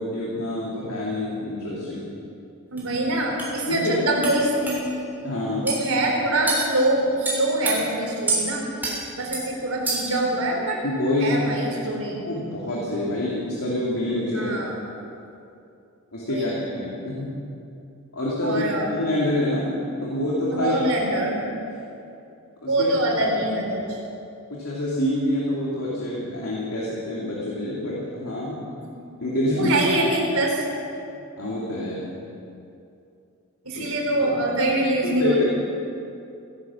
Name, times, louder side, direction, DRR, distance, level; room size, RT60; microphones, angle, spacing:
voice 1, 0.0-2.1 3.7-3.9 5.2-5.7 10.8-11.5 12.3-14.6 16.1-17.3 18.1-20.8 22.6-22.9 24.5-28.6 29.2-29.7 31.4-32.1 33.7-33.9 35.0-35.4, left 1 dB, 85° left, -6 dB, 2.7 m, -26 dB
voice 2, 2.7-4.8 5.6-8.7 9.2-10.8 11.2-12.2 14.3-14.8 16.3-16.5 18.4-18.9 20.5-21.4 22.7-24.0 29.5-30.7 33.6-35.4, right 1 dB, 75° right, 0 dB, 3.6 m, -24 dB
sound 1, 2.8-2.9 3.4-3.5 4.2-4.4 4.7-4.8 5.7-5.8 6.5-6.7 7.2-7.8 8.3-8.4 8.8-9.0 9.3-9.5 9.9-10.2, right 3 dB, 10° right, 3.2 m, -26 dB
16.5 x 11.0 x 7.2 m, 2.7 s
head